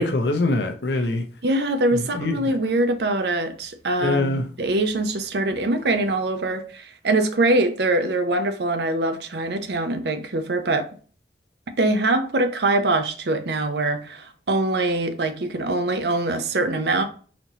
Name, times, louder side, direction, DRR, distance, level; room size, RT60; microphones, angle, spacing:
voice 1, 0.0-1.2 2.2-2.6 4.0-4.4, left 2 dB, 70° left, 0.7 m, -23 dB
voice 2, 1.4-10.9 11.8-17.0, right 2 dB, 65° right, 0.6 m, -23 dB
4.1 x 3.0 x 2.8 m
head